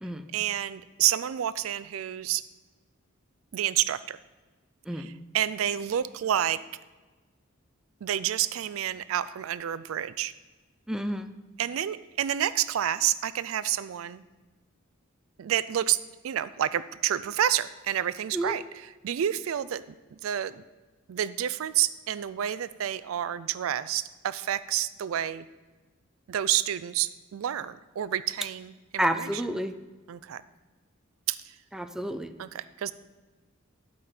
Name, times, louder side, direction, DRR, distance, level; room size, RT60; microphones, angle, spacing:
voice 1, 0.3-2.4 3.5-4.2 5.3-6.6 8.0-10.3 11.6-14.2 15.4-16.0 16.2-18.6 19.0-19.8 20.2-20.6 21.1-25.4 26.3-28.7 29.2-29.3 30.1-30.4 31.3-31.4 32.4-32.9, right 11 dB, 90° right, 16 dB, 0.4 m, -29 dB
voice 2, 10.9-11.3 18.3-18.5 29.0-29.8 31.7-32.3, right 1 dB, 5° right, 8 dB, 0.4 m, -30 dB
11.5 x 4.9 x 4.4 m, 1.3 s
head